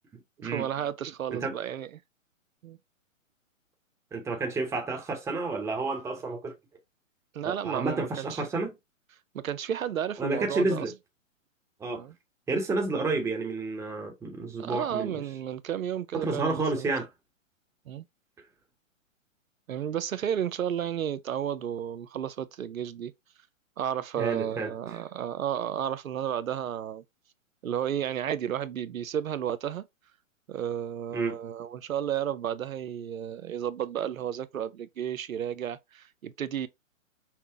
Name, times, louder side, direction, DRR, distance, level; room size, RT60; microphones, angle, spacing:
voice 1, 0.4-2.0 2.6-2.8 7.3-8.4 9.3-10.9 11.9-12.1 14.6-16.9 17.9-18.0 19.7-23.1 23.8-27.0 27.6-29.8 30.5-36.7, right 9 dB, 80° right, 0.6 m, -32 dB
voice 2, 4.1-6.5 7.4-8.8 10.2-10.9 11.8-12.0 12.5-15.2 16.1-17.1 24.2-24.7 31.1-31.4, right 3 dB, 5° right, 0.9 m, -30 dB
5.8 x 2.0 x 4.5 m
figure-of-eight pair, 125°, 40 cm